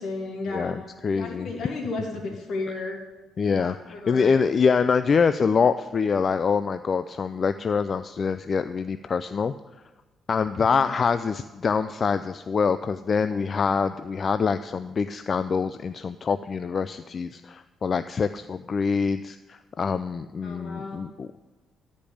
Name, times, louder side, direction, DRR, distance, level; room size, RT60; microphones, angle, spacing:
voice 1, 0.0-0.7 1.1-3.0 3.4-4.3 10.7-10.9 20.4-21.0, left 3 dB, 70° left, 1 dB, 2.3 m, -33 dB
voice 2, 0.5-1.5 3.4-9.5 10.3-21.4, left 5 dB, 40° left, 11 dB, 0.3 m, -25 dB
11.5 x 5.2 x 8.5 m, 1.2 s
cardioid pair, 95°, 0 cm